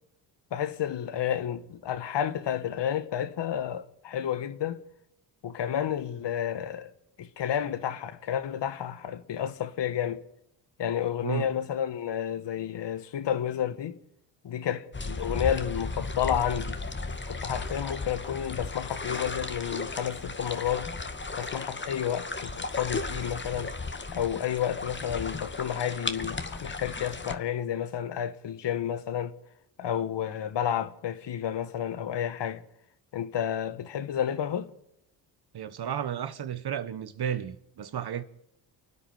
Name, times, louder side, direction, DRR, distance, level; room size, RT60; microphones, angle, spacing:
voice 1, 0.5-4.8 5.4-6.9 7.2-10.2 10.8-14.0 14.4-16.8 17.2-20.9 21.4-23.7 24.1-29.3 29.8-32.6 33.1-34.7, left 9 dB, 55° left, 1.6 m, -31 dB
sound 1, 14.9-27.4, left 3 dB, 20° left, 2.1 m, -35 dB
voice 2, 35.5-38.2, right 9 dB, 50° right, 1.5 m, -33 dB
29.5 x 9.9 x 8.9 m
hypercardioid pair, 55°, 49 cm